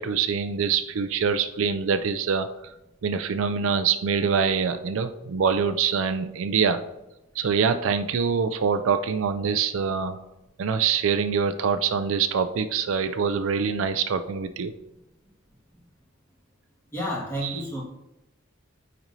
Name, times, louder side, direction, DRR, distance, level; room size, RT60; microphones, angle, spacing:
voice 1, 0.0-2.5 3.0-6.8 7.4-10.2 10.6-14.7 17.4-17.6, right 6 dB, 60° right, 10 dB, 0.4 m, -24 dB
voice 2, 16.9-17.8, equal, 10° left, -5 dB, 1.8 m, -30 dB
8.9 x 5.2 x 2.7 m, 0.94 s
head